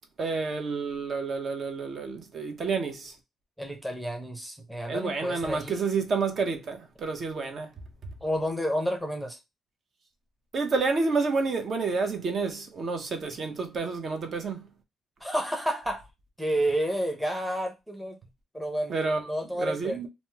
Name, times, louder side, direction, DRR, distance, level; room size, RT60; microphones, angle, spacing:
voice 1, 0.2-3.2 4.9-7.7 10.5-14.6 18.9-19.2 19.6-20.1, right 4 dB, 55° right, 0.7 m, -29 dB
voice 2, 3.6-5.8 8.2-9.4 15.2-16.1 16.4-18.2 18.5-18.9 19.3-20.1, equal, ahead, 0.7 m, -30 dB
2.9 x 2.1 x 3.3 m
cardioid pair, 90°, 0 cm